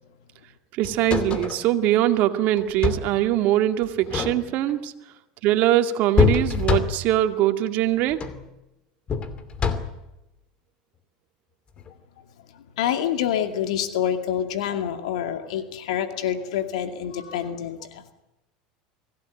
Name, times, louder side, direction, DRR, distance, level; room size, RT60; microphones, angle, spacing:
voice 1, 0.7-4.9 5.4-8.2, right 13 dB, 55° right, 7 dB, 2.2 m, -22 dB
sound 1, 0.8-1.6 2.6-3.2 4.0-4.7 6.2-7.2 8.1-8.5 9.1-10.1 11.8-11.9, left 6 dB, 30° left, 2.6 m, -25 dB
voice 2, 12.5-18.1, left 9 dB, 85° left, 8 dB, 2.4 m, -27 dB
25.0 x 17.0 x 9.3 m, 0.95 s
supercardioid pair, 115°, 3 cm